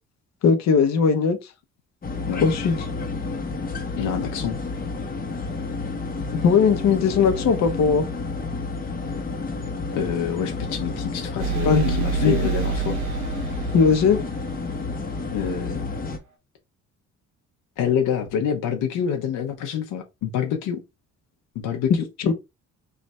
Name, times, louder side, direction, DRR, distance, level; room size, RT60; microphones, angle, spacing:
voice 1, 0.4-1.4 2.4-2.7 6.4-8.0 11.6-12.4 13.7-14.2 22.2-22.3, left 6 dB, 60° left, 0.9 m, -19 dB
sound 1, 2.0-16.2, left 3 dB, 30° left, 0.9 m, -30 dB
voice 2, 4.0-4.6 9.9-13.0 15.3-15.9 17.8-20.8 21.5-22.0, left 8 dB, 90° left, 0.8 m, -27 dB
sound 2, 11.4-15.1, right 8 dB, 75° right, 1.1 m, -28 dB
3.3 x 2.4 x 4.1 m
cardioid pair, 90°, 30 cm